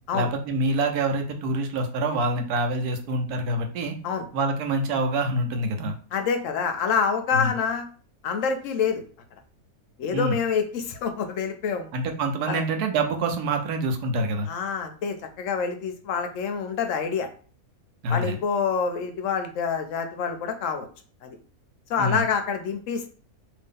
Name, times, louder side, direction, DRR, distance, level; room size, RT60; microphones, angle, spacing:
voice 1, 0.1-3.9 4.3-5.9 7.3-7.5 10.1-10.4 11.9-14.5 18.0-18.4 22.0-22.2, right 2 dB, 80° right, 5 dB, 1.1 m, -26 dB
voice 2, 6.1-7.8 8.2-9.0 10.0-11.9 12.5-12.6 14.5-17.3 18.1-20.9 21.2-21.4 21.9-23.1, left 6 dB, 70° left, 6 dB, 0.8 m, -27 dB
2.8 x 2.7 x 3.6 m, 0.41 s
omnidirectional pair, 1.6 m